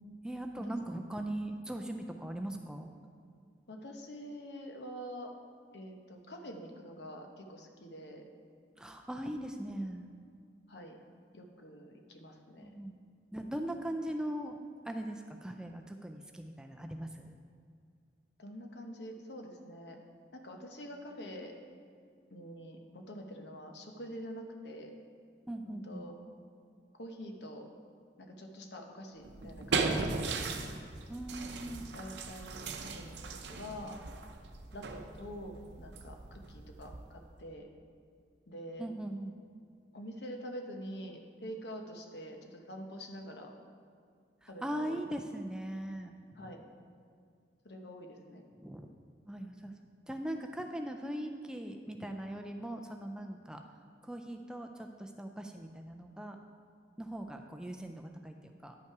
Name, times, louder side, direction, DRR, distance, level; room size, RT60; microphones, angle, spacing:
voice 1, 0.2-2.9 8.8-10.1 12.6-12.9 13.3-14.6 14.9-17.3 25.5-26.1 31.1-31.9 38.8-39.3 44.4-46.1 48.6-48.9 49.3-49.7 50.1-53.6 54.0-56.4 57.0-58.4 58.6-58.7, right 1 dB, 5° right, 4 dB, 0.4 m, -40 dB
voice 2, 3.7-5.3 5.7-8.3 10.7-11.0 11.3-12.7 18.4-20.0 20.3-21.5 22.3-25.0 25.7-26.2 26.9-27.7 28.2-30.6 31.9-34.0 34.7-37.7 38.5-38.9 39.9-43.5 44.5-45.0 46.4-46.6 47.6-48.4, equal, 70° left, 3 dB, 1.0 m, -46 dB
sound 1, 29.2-37.3, right 4 dB, 75° right, 0.6 m, -38 dB
10.5 x 5.7 x 4.7 m, 2.2 s
head